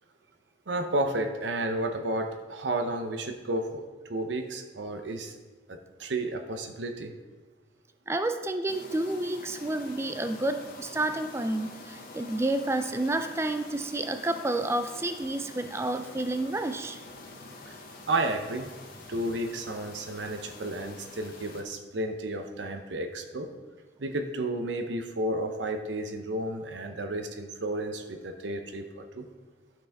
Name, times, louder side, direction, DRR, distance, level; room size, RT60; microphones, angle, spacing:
voice 1, 0.7-5.3 5.7-7.1 17.7-17.8 18.1-18.7 19.1-23.5 24.0-29.3, right 1 dB, 85° right, 5 dB, 0.7 m, -32 dB
voice 2, 8.1-17.0, right 2 dB, 15° right, 8 dB, 0.4 m, -30 dB
sound 1, 8.7-21.6, left 2 dB, 55° left, 1.2 m, -46 dB
11.5 x 6.1 x 3.5 m, 1.3 s
head